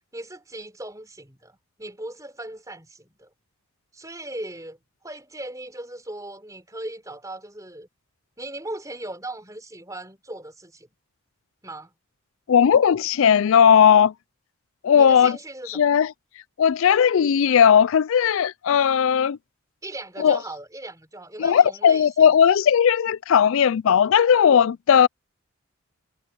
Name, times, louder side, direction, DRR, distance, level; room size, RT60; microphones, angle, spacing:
voice 1, 0.1-3.3 3.9-4.8 5.0-7.9 8.4-10.9 11.6-11.9 14.9-15.8 19.8-22.3, right 1 dB, 15° right, 4.4 m, -38 dB
voice 2, 12.5-14.1 14.8-15.4 15.8-16.1 16.6-19.4 20.2-20.4 21.4-25.1, left 8 dB, 65° left, 0.3 m, -17 dB
head